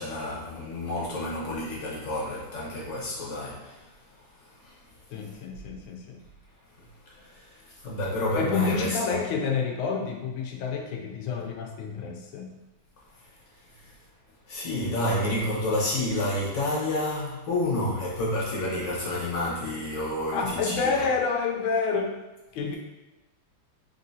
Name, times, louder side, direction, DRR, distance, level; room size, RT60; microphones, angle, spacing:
voice 1, 0.0-3.9 4.6-4.8 5.2-5.3 6.8-9.2 13.7-13.9 14.5-20.9, left 1 dB, 45° left, -6 dB, 1.1 m, -30 dB
voice 2, 5.1-6.2 8.3-12.5 20.3-22.2 22.5-22.8, left 5 dB, 85° left, 2 dB, 1.4 m, -28 dB
3.7 x 3.7 x 2.7 m, 1.1 s
omnidirectional pair, 2.2 m